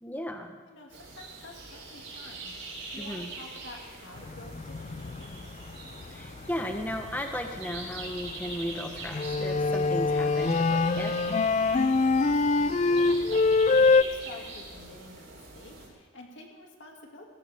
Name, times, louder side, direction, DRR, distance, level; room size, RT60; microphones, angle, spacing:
voice 1, 0.0-0.6 3.0-3.3 6.1-11.2, equal, 10° left, 4 dB, 1.1 m, -35 dB
voice 2, 0.7-2.5 2.9-5.5 12.0-17.2, left 2 dB, 60° left, 0 dB, 2.5 m, -49 dB
sound 1, 0.9-15.9, right 2 dB, 65° right, 4.7 m, -43 dB
sound 2, 4.2-14.0, left 3 dB, 30° left, 0.3 m, -25 dB
17.0 x 16.5 x 3.6 m, 1.4 s
head